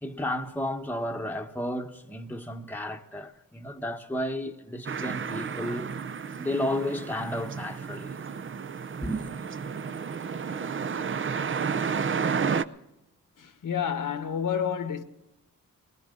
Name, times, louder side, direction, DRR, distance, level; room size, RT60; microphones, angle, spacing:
voice 1, 0.0-5.9 6.4-8.1 9.0-9.3, left 1 dB, 5° left, 1.0 m, -32 dB
sound 1, 4.9-12.6, right 6 dB, 35° right, 0.6 m, -31 dB
voice 2, 13.4-15.0, left 8 dB, 65° left, 1.2 m, -29 dB
20.0 x 18.0 x 3.7 m
cardioid pair, 85°, 34 cm